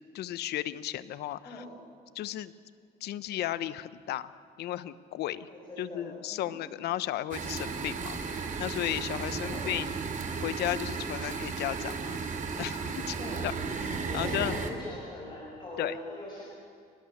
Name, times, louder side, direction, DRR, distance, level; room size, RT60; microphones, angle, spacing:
voice 1, 0.1-1.6 2.1-2.5 3.0-4.3 4.6-5.5 5.8-9.9 10.3-12.2 12.6-13.2 13.4-14.5 15.8-16.0, left 13 dB, 75° left, 15 dB, 1.0 m, -34 dB
voice 2, 1.4-1.7 5.5-6.5 9.1-9.7 13.2-13.5 14.1-16.4, left 1 dB, 25° left, -4 dB, 6.4 m, -41 dB
sound 1, 7.3-14.7, right 5 dB, 50° right, 3.3 m, -34 dB
30.0 x 19.0 x 7.3 m, 2.3 s
cardioid pair, 110°, 17 cm